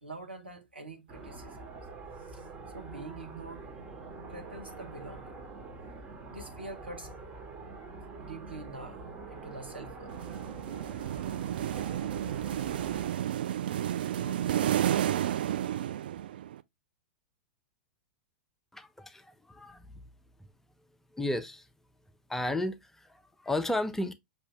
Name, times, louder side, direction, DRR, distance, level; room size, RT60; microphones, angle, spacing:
voice 1, 0.0-1.6 2.3-2.5 2.7-3.7 4.3-5.3 6.3-7.2 8.2-10.2 14.1-14.9, right 2 dB, 90° right, 1.1 m, -45 dB
sound 1, 1.1-13.1, right 3 dB, 30° right, 1.4 m, -45 dB
sound 2, 10.1-16.6, right 11 dB, 65° right, 0.3 m, -31 dB
voice 2, 18.7-19.9 21.1-21.7 22.3-24.1, left 1 dB, 5° left, 0.5 m, -33 dB
6.0 x 2.7 x 3.1 m
figure-of-eight pair, 95°, 6 cm